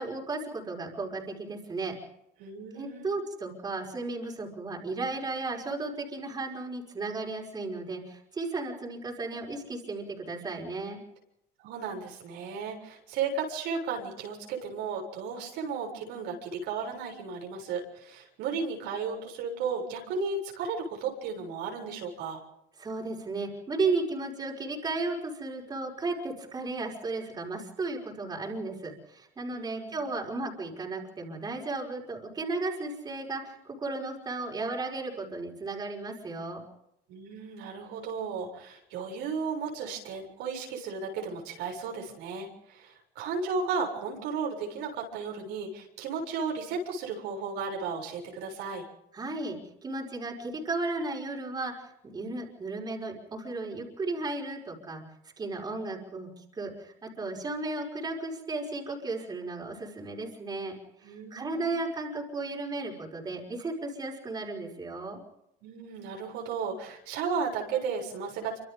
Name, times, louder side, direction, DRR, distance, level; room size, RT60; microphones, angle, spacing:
voice 1, 0.0-2.0 2.7-11.0 22.8-36.6 49.1-55.0 55.4-60.7 61.0-65.2, right 3 dB, 20° right, -1 dB, 5.2 m, -34 dB
voice 2, 2.4-3.1 11.6-22.4 29.5-30.0 37.1-48.9 61.0-61.8 65.6-68.6, right 5 dB, 75° right, 1 dB, 7.2 m, -34 dB
28.5 x 25.5 x 3.8 m, 0.80 s
cardioid pair, 145°, 18 cm